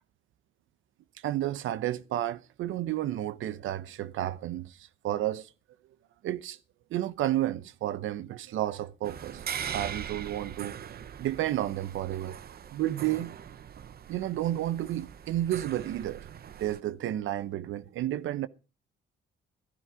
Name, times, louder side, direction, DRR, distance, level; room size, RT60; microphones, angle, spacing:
voice 1, 1.2-5.5 6.2-6.6 6.9-9.4 9.7-10.8 11.2-12.4 12.7-13.4 14.1-16.3 16.6-18.5, right 13 dB, 80° right, 0.9 m, -31 dB
Dresden Green Vault clock, 9.0-16.8, right 8 dB, 50° right, 0.9 m, -41 dB
14.5 x 11.0 x 5.0 m
cardioid pair, 90°, 20 cm